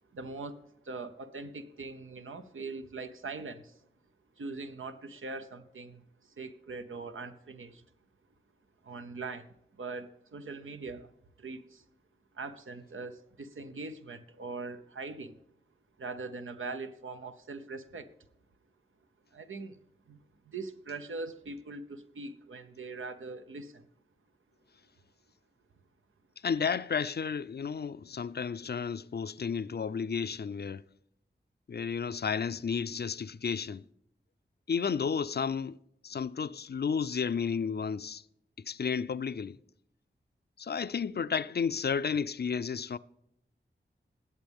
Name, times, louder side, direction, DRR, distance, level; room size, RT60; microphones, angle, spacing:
voice 1, 0.1-3.8 4.4-7.8 8.8-11.1 11.4-11.9 12.3-15.4 16.0-18.1 19.3-19.8 20.1-23.9, right 3 dB, 90° right, 0.9 m, -42 dB
voice 2, 26.4-30.8 31.7-33.8 34.7-35.8 36.0-38.2 38.6-39.6 40.6-43.0, left 6 dB, 55° left, 0.5 m, -32 dB
20.5 x 8.5 x 3.5 m
cardioid pair, 45°, 20 cm